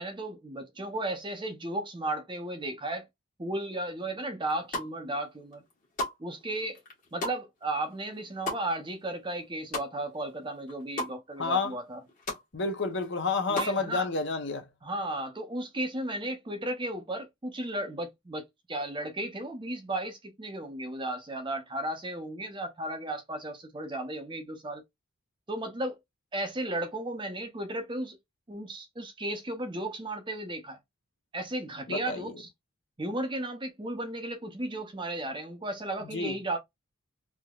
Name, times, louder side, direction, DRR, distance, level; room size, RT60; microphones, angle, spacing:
voice 1, 0.0-3.1 3.4-5.6 6.2-6.8 7.1-12.0 13.5-14.1 14.8-24.8 25.5-26.0 26.3-28.2 28.5-30.8 31.3-32.5 33.0-36.6, right 1 dB, 20° right, 0.6 m, -34 dB
sound 1, 4.4-5.2 5.5-10.3 10.5-11.1 11.6-11.7 11.9-12.4 12.8-13.8, left 1 dB, 35° left, 1.3 m, -36 dB
voice 2, 11.4-11.7 12.5-14.7 31.9-32.2 36.1-36.3, left 4 dB, 55° left, 0.7 m, -29 dB
3.4 x 2.8 x 2.3 m
head